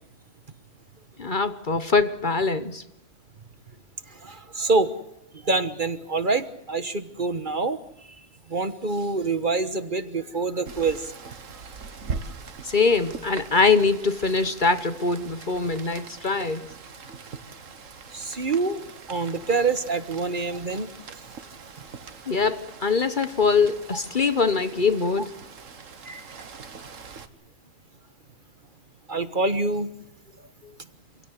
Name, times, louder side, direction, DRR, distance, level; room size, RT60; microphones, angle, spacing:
voice 1, 1.2-2.8 12.6-16.7 22.3-25.3, left 4 dB, 40° left, 1.2 m, -23 dB
voice 2, 4.2-4.9 5.4-7.8 8.5-11.3 18.1-18.8 19.1-20.9 26.1-26.2 29.1-29.9, right 3 dB, 40° right, 1.4 m, -26 dB
Rain, 10.6-27.3, right 5 dB, 85° right, 1.9 m, -41 dB
27.0 x 17.0 x 8.2 m
omnidirectional pair, 1.3 m